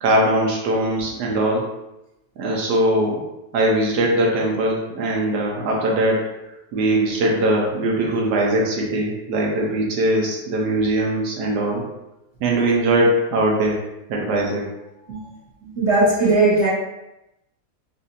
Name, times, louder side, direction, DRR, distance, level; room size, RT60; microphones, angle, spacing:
voice 1, 0.0-1.6 2.4-3.2 3.5-6.2 6.7-11.8 12.4-13.8 14.1-14.6, right 1 dB, 80° right, -1 dB, 1.3 m, -20 dB
voice 2, 15.8-16.7, right 2 dB, 45° right, -8 dB, 1.4 m, -17 dB
4.1 x 2.5 x 2.6 m, 0.93 s
omnidirectional pair, 1.8 m